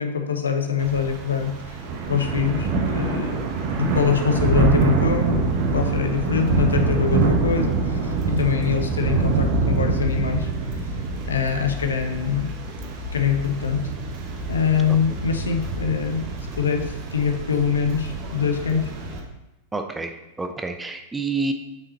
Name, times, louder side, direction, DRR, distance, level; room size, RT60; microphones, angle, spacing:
voice 1, 0.0-1.8 2.1-3.4 3.8-10.5 10.9-11.0 11.3-12.5 13.1-13.9 14.5-18.9, left 6 dB, 70° left, 6 dB, 0.9 m, -24 dB
Thunder / Rain, 0.8-19.2, right 3 dB, 45° right, 1.3 m, -25 dB
voice 2, 19.7-20.1 20.4-21.5, right 3 dB, 10° right, 6 dB, 0.7 m, -28 dB
8.1 x 6.2 x 4.3 m, 0.96 s
figure-of-eight pair, 90°, 0 cm